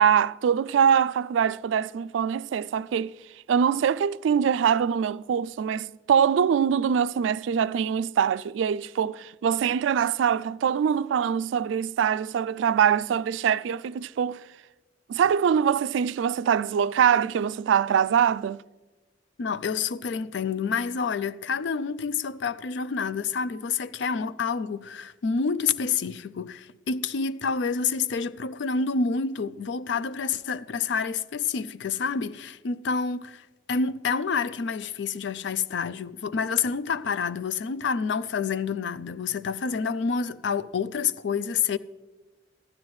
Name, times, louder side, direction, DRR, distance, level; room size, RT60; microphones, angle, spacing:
voice 1, 0.0-3.1 3.5-14.4 15.1-18.6, right 8 dB, 90° right, 0.3 m, -23 dB
voice 2, 19.4-41.8, left 5 dB, 75° left, 0.4 m, -28 dB
15.0 x 12.0 x 3.1 m
head